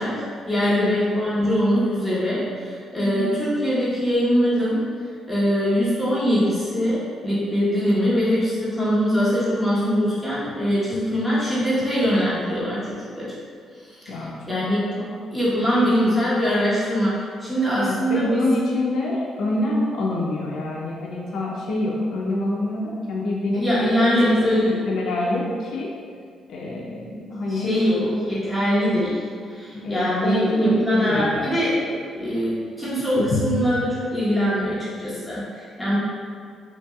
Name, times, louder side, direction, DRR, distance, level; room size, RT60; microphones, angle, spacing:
voice 1, 0.0-4.8 5.3-12.8 13.2-13.4 13.8-14.1 14.5-14.9 15.3-18.4 23.5-24.8 27.3-28.0 28.3-29.2 29.5-31.7 32.1-36.0, equal, 5° left, -10 dB, 1.1 m, -22 dB
voice 2, 0.7-1.1 3.0-3.5 14.1-15.1 15.7-16.2 17.7-25.9 26.5-28.4 29.7-31.5 33.2-33.8, left 1 dB, 70° left, -3 dB, 0.4 m, -26 dB
3.1 x 2.6 x 2.3 m, 2.1 s
cardioid pair, 90°, 0 cm